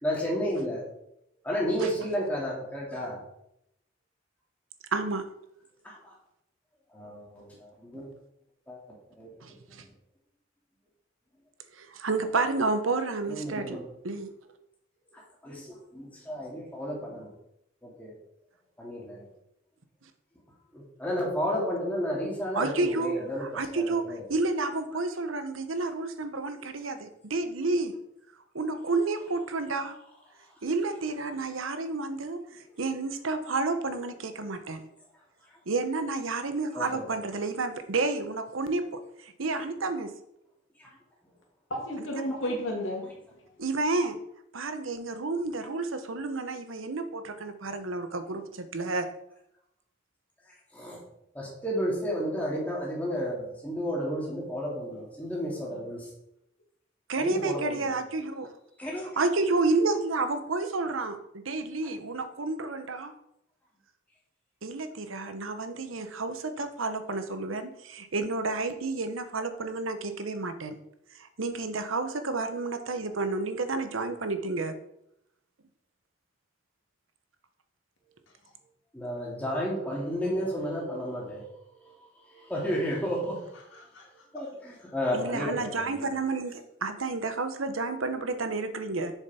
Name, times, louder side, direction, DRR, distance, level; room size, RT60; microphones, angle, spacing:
voice 1, 0.0-0.8 1.4-3.2 5.8-6.1 6.9-8.1 8.7-8.8 9.2-9.3 9.7-9.9 13.3-13.8 15.1-17.3 17.8-18.1 18.8-19.3 20.7-24.2 36.7-37.1 39.5-39.6 40.8-40.9 42.3-42.4 50.7-51.0 51.3-56.1 57.1-58.0 58.8-59.1 78.9-83.9 84.3-86.0, equal, 10° left, -4 dB, 2.6 m, -32 dB
voice 2, 4.9-5.2 9.4-9.8 11.8-13.8 14.0-14.3 22.5-24.0 24.3-27.9 28.5-29.9 30.6-32.4 32.8-34.8 35.7-38.8 39.2-40.1 43.6-44.2 44.5-49.1 57.1-58.5 59.2-63.1 64.6-70.8 71.2-74.7 85.1-89.1, right 3 dB, 85° right, 9 dB, 1.0 m, -30 dB
voice 3, 41.7-43.1 54.9-55.0 55.5-55.6 79.8-80.0 83.7-84.1, equal, 75° left, 0 dB, 2.4 m, -33 dB
7.3 x 7.2 x 4.3 m, 0.78 s
head